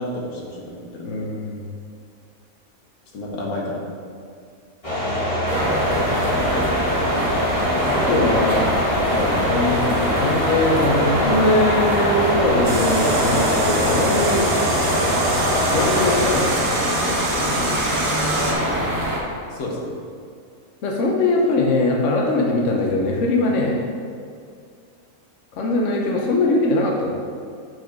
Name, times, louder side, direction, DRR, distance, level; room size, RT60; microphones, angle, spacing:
voice 1, 0.0-1.2 3.1-3.9 5.9-6.5 19.5-19.9, left 1 dB, 80° left, -2 dB, 1.7 m, -31 dB
voice 2, 1.0-1.6 7.9-8.8 9.0-14.5 14.8-15.0 15.7-18.6 20.8-23.8 25.5-27.1, left 2 dB, 60° left, -1 dB, 1.2 m, -22 dB
sound 1, 4.8-16.3, left 1 dB, 25° left, 1.7 m, -23 dB
sound 2, 5.5-19.2, right 1 dB, 45° right, 1.5 m, -24 dB
sound 3, 12.6-18.5, right 3 dB, 65° right, 1.4 m, -27 dB
6.1 x 5.5 x 5.1 m, 2.2 s
omnidirectional pair, 1.5 m